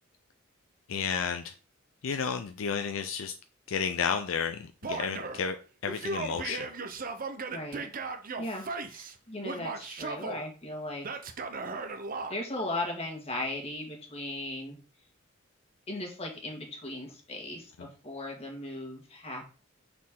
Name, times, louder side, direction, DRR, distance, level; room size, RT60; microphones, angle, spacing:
voice 1, 0.9-1.5 2.0-3.3 3.7-5.6 5.8-6.7 17.8-17.9, left 6 dB, 70° left, 0.5 m, -32 dB
Male speech man speaking / Yell, 4.8-5.4 5.9-9.1 9.4-10.4 11.0-12.3, right 4 dB, 45° right, 0.7 m, -37 dB
voice 2, 7.5-7.8 8.4-11.2 12.3-14.8 15.9-19.4, left 1 dB, 30° left, 1.7 m, -37 dB
6.2 x 4.3 x 3.7 m
head